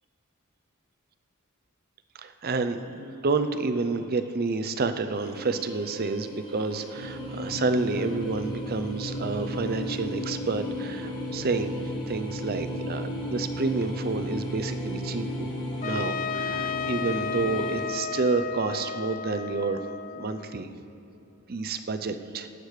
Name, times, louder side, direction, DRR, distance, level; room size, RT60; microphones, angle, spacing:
voice 1, 2.2-15.5 15.8-19.9 20.1-20.7 21.5-22.5, right 3 dB, 45° right, 10 dB, 0.6 m, -29 dB
sound 1, 5.1-17.8, left 1 dB, 20° left, 1.6 m, -41 dB
sound 2, 7.0-18.1, equal, 70° right, 1.4 m, -35 dB
Trumpet, 15.8-20.6, left 6 dB, 35° left, 0.4 m, -33 dB
18.0 x 8.3 x 4.9 m, 2.9 s
head